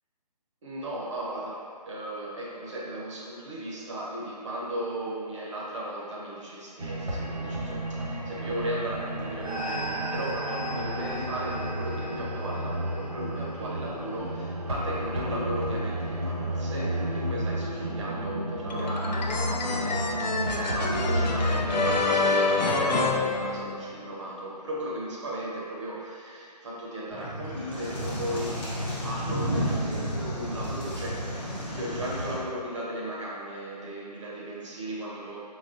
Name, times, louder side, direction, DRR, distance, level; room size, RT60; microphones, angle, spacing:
voice 1, 0.6-35.4, right 1 dB, 45° right, -4 dB, 0.8 m, -36 dB
sound 1, 6.8-22.0, right 1 dB, 60° right, 1.0 m, -31 dB
sound 2, 18.7-24.1, left 3 dB, 85° left, 0.5 m, -27 dB
sound 3, 27.1-32.4, equal, 15° left, 0.5 m, -32 dB
4.0 x 3.4 x 2.6 m, 2.2 s
figure-of-eight pair, 155°, 21 cm